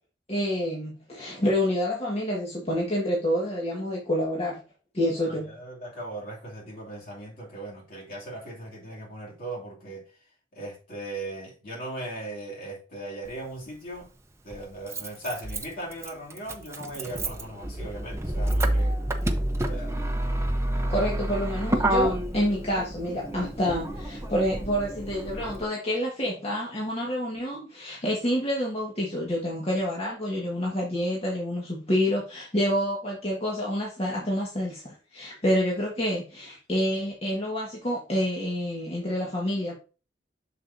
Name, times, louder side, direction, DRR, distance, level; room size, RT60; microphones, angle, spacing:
voice 1, 0.3-4.6 4.9-5.6 20.9-39.7, equal, 35° left, 1.7 m, -28 dB
voice 2, 5.3-10.0 10.5-14.1 14.4-19.0 19.7-20.0 20.7-20.9, right 1 dB, 50° left, 2.7 m, -38 dB
Motor vehicle (road), 13.3-13.4 14.5-25.6, right 1 dB, 15° right, 0.7 m, -29 dB
7.4 x 6.4 x 2.7 m
head